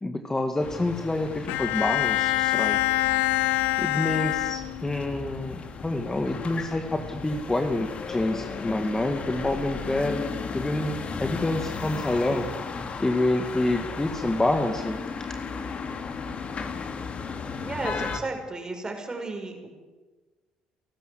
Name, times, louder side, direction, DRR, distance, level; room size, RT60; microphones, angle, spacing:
voice 1, 0.0-2.8 3.8-5.6 5.8-10.2 10.5-12.5 13.0-15.0, left 2 dB, 15° left, 6 dB, 2.0 m, -27 dB
sound 1, 0.6-18.2, left 5 dB, 45° left, 2.4 m, -35 dB
Bowed string instrument, 1.5-5.1, left 15 dB, 80° left, 0.9 m, -25 dB
voice 2, 17.6-19.7, right 3 dB, 25° right, 4 dB, 5.6 m, -33 dB
28.5 x 12.5 x 7.9 m, 1.3 s
hypercardioid pair, 65°, 3 cm